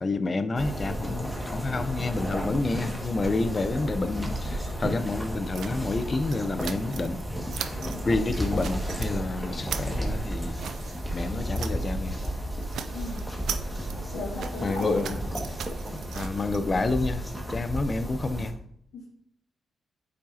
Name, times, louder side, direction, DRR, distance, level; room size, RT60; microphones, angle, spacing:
voice 1, 0.0-7.2 8.0-10.6 11.1-12.2 14.6-15.2 16.1-17.2 17.5-18.6, left 3 dB, 40° left, 0.7 m, -29 dB
sound 1, 0.6-18.5, equal, ahead, 1.9 m, -33 dB
sound 2, 5.5-7.2 7.5-8.0 8.4-9.1 9.4-11.9 12.2-12.4 12.6-16.6, right 8 dB, 75° right, 0.5 m, -39 dB
voice 2, 7.7-8.1 12.9-13.3 14.1-15.2 18.9-19.0, left 2 dB, 80° left, 1.5 m, -36 dB
8.7 x 5.1 x 2.8 m
supercardioid pair, 45°, 0 cm